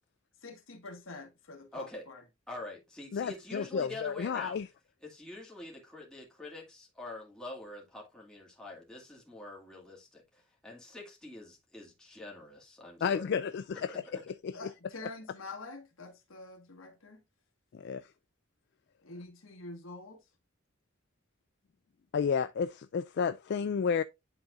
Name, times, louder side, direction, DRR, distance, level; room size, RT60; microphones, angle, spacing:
voice 1, 0.4-2.2 14.5-17.2 19.0-20.2, left 2 dB, 80° left, 1.5 m, -46 dB
voice 2, 1.7-2.0 2.5-4.6 5.0-13.4 13.9-14.2, left 2 dB, 5° left, 2.1 m, -45 dB
voice 3, 3.1-4.7 13.0-13.9 14.4-14.5 17.7-18.0 22.1-24.0, left 6 dB, 55° left, 0.3 m, -31 dB
10.5 x 4.0 x 2.4 m
head